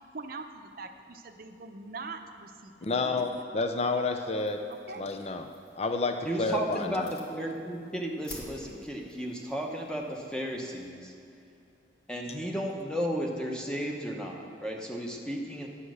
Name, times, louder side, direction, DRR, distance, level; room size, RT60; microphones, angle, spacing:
voice 1, 0.1-3.2 4.7-5.1, right 3 dB, 50° right, 6 dB, 0.7 m, -43 dB
voice 2, 2.8-4.6 5.0-5.5 5.8-7.1, left 3 dB, 35° left, 6 dB, 0.5 m, -30 dB
sound 1, 3.7-10.9, left 1 dB, 60° left, 2.1 m, -53 dB
voice 3, 6.2-11.1 12.1-15.7, equal, 5° left, 0 dB, 1.0 m, -34 dB
9.9 x 8.3 x 6.3 m, 2.7 s
head